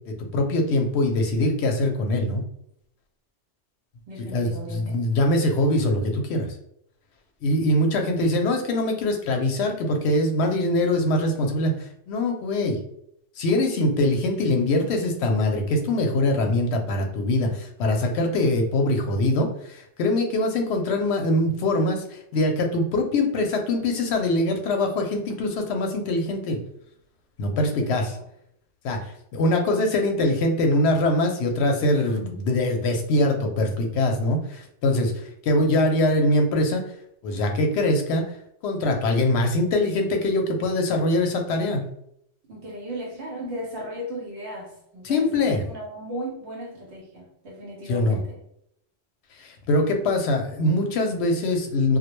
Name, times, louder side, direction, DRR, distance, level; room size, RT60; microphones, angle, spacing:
voice 1, 0.1-2.4 4.2-6.5 7.4-12.8 13.4-26.6 27.4-28.2 28.8-36.8 37.2-38.2 38.6-41.8 43.4-43.5 45.0-45.6 47.9-48.2 49.4-52.0, left 1 dB, 70° left, 4 dB, 0.8 m, -23 dB
voice 2, 4.1-5.0 27.6-27.8 28.1-28.2 42.5-48.4, right 1 dB, 70° right, -3 dB, 0.9 m, -36 dB
2.2 x 2.1 x 2.9 m, 0.73 s
omnidirectional pair, 1.2 m